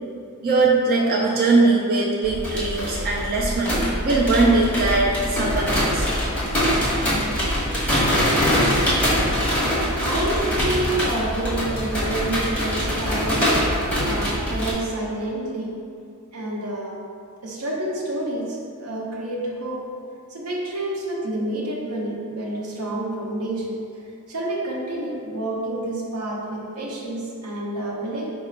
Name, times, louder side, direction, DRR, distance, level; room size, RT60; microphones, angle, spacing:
voice 1, 0.4-6.1, right 3 dB, 45° right, -3 dB, 0.4 m, -20 dB
sound 1, 2.2-14.7, equal, 5° left, 1.1 m, -23 dB
voice 2, 9.8-15.8 16.3-17.0 17.4-19.9 20.3-23.8 24.3-28.3, right 1 dB, 80° right, -3 dB, 0.8 m, -28 dB
4.8 x 2.2 x 4.3 m, 2.4 s
head